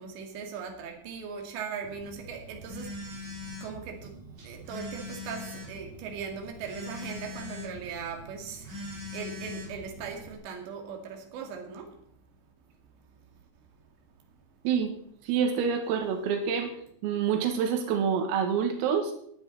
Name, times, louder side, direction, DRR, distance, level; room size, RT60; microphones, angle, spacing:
voice 1, 0.0-13.7 14.1-14.2 14.5-14.6, right 6 dB, 65° right, 4.3 m, -40 dB
Telephone, 1.8-10.4, left 2 dB, 40° right, 5.5 m, -42 dB
voice 2, 15.2-16.7 17.0-19.1, right 7 dB, 90° right, 4.4 m, -27 dB
20.0 x 9.8 x 4.1 m
omnidirectional pair, 5.9 m